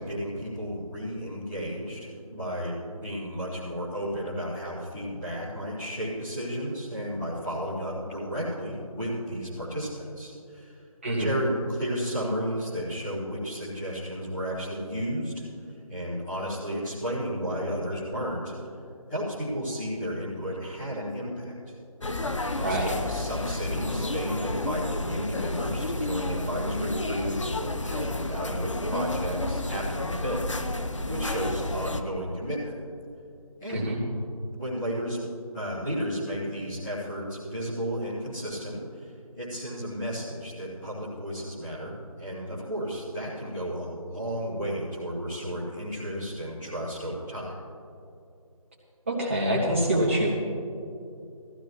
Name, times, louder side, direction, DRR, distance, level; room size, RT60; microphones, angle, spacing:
voice 1, 0.0-10.8 11.2-18.5 19.1-21.7 22.6-30.7 31.1-32.7 33.6-33.9 34.5-35.2 35.5-39.1 39.4-47.5, equal, 5° left, -18 dB, 0.8 m, -33 dB
voice 2, 11.0-11.4 22.6-22.9 33.7-34.0 49.1-50.3, right 1 dB, 20° right, -4 dB, 1.9 m, -25 dB
sound 1, 22.0-32.0, left 2 dB, 55° left, 0.8 m, -31 dB
18.0 x 15.5 x 3.0 m, 2.6 s
figure-of-eight pair, 170°, 19 cm